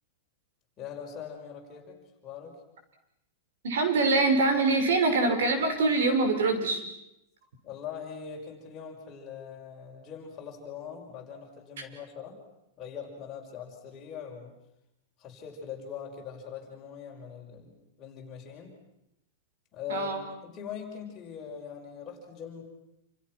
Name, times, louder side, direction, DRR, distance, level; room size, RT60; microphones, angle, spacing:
voice 1, 0.8-2.6 7.6-12.4 12.8-14.5 15.2-18.7 19.7-22.6, left 7 dB, 20° left, 0 dB, 5.5 m, -42 dB
voice 2, 3.6-6.8 19.9-20.2, right 3 dB, 75° right, 7 dB, 6.2 m, -24 dB
29.0 x 28.5 x 6.2 m, 0.83 s
supercardioid pair, 170°, 0 cm